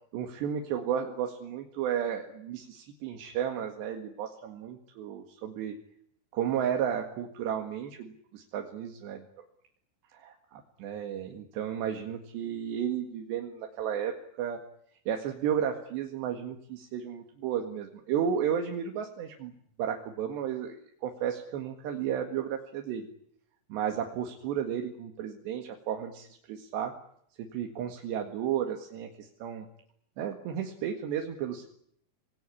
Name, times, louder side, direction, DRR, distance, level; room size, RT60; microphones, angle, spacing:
voice 1, 0.1-5.8 6.3-9.2 10.1-14.6 15.1-19.5 19.8-23.1 23.7-26.9 27.4-29.7 30.2-31.7, right 9 dB, 80° right, 4 dB, 4.1 m, -33 dB
26.0 x 20.0 x 9.9 m, 0.70 s
omnidirectional pair, 5.0 m